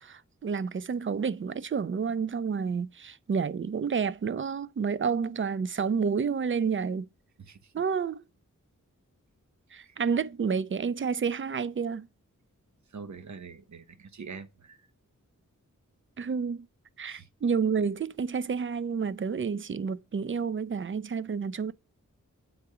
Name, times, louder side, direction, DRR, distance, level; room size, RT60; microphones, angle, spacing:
voice 1, 0.0-7.1 7.7-8.2 9.7-12.1 16.2-16.7 17.0-21.7, right 6 dB, 40° right, 0.4 m, -30 dB
voice 2, 7.4-7.7 9.8-10.0 12.9-14.8 17.0-17.3, right 5 dB, 65° right, 0.8 m, -44 dB
8.0 x 2.8 x 4.8 m
wide cardioid pair, 70°, 31 cm